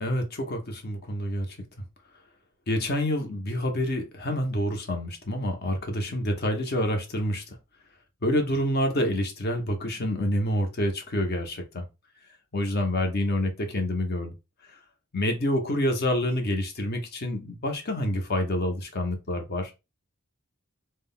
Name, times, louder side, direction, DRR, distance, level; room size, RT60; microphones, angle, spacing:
voice 1, 0.0-1.6 2.7-7.6 8.2-11.8 12.5-14.3 15.1-19.7, left 1 dB, 50° left, 0.6 m, -27 dB
2.3 x 2.0 x 3.6 m
head